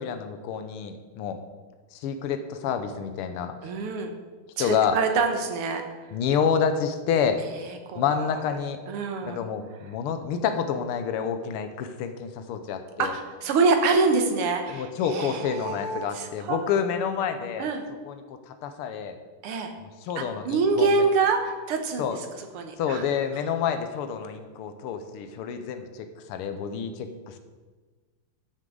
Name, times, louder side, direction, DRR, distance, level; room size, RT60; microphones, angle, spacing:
voice 1, 0.0-1.4 1.9-3.5 4.6-5.0 6.1-7.4 7.9-8.8 9.2-13.1 14.7-17.7 18.0-18.1 18.5-19.2 19.8-21.0 22.0-22.2 22.8-27.4, left 7 dB, 90° left, 8 dB, 1.7 m, -28 dB
voice 2, 3.6-4.1 4.6-5.8 7.6-8.2 8.9-9.5 13.0-16.7 17.6-17.8 19.4-19.7 20.2-22.1 22.5-23.0, right 4 dB, 85° right, 5 dB, 2.0 m, -26 dB
13.0 x 6.4 x 3.8 m, 1.3 s
omnidirectional pair, 2.4 m